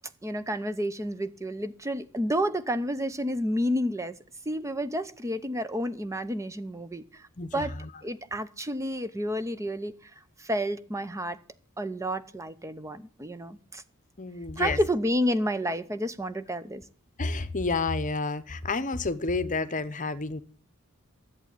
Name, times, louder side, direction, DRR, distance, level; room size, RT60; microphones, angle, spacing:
voice 1, 0.2-4.2 4.5-7.3 7.5-7.7 8.0-10.0 10.4-11.4 11.8-13.8 14.6-16.8, equal, 15° right, 0.7 m, -30 dB
voice 2, 7.4-7.9 14.2-14.8 17.2-20.4, left 3 dB, 35° left, 0.9 m, -30 dB
11.0 x 8.2 x 8.8 m
head